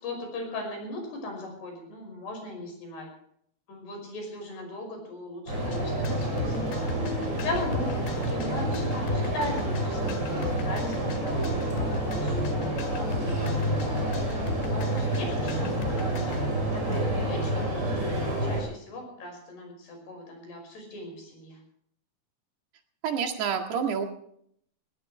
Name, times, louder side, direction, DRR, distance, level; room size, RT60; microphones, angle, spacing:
voice 1, 0.0-3.1 3.7-6.6 7.4-14.2 14.7-21.6, left 2 dB, 90° left, 2 dB, 7.7 m, -38 dB
sound 1, 5.5-18.6, right 1 dB, 25° right, 7.0 m, -28 dB
sound 2, 5.7-16.4, left 8 dB, 70° left, 3.5 m, -39 dB
voice 2, 23.0-24.1, right 7 dB, 85° right, 4 dB, 4.0 m, -28 dB
20.0 x 17.5 x 3.3 m, 0.66 s
omnidirectional pair, 4.6 m